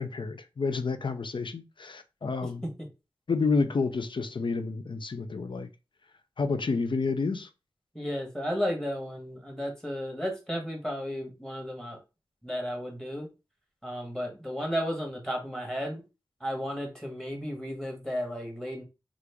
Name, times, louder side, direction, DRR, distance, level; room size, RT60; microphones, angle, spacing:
voice 1, 0.0-2.7 3.3-5.7 6.4-7.5, left 4 dB, 60° left, 0.4 m, -29 dB
voice 2, 2.4-2.9 7.9-12.0 12.4-13.3 13.8-16.0 16.4-18.8, equal, 5° left, 1.3 m, -33 dB
3.1 x 2.5 x 3.4 m
wide cardioid pair, 50°, 9 cm